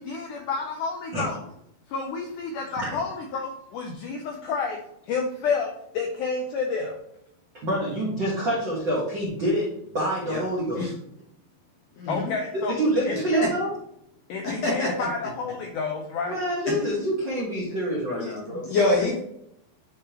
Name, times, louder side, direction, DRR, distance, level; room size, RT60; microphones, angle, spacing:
voice 1, 0.0-1.5 1.9-4.8 5.1-7.0 12.1-12.8 13.1-13.2 14.3-16.3, left 4 dB, 85° left, 2 dB, 1.8 m, -30 dB
voice 2, 7.6-9.7 9.9-10.8 12.7-13.7 16.2-18.6, right 1 dB, 70° right, -5 dB, 1.0 m, -26 dB
voice 3, 12.0-12.3 13.3-13.5 14.4-15.1 18.1-19.2, left 2 dB, 65° left, -3 dB, 1.7 m, -26 dB
9.5 x 3.4 x 3.0 m, 0.76 s
omnidirectional pair, 4.3 m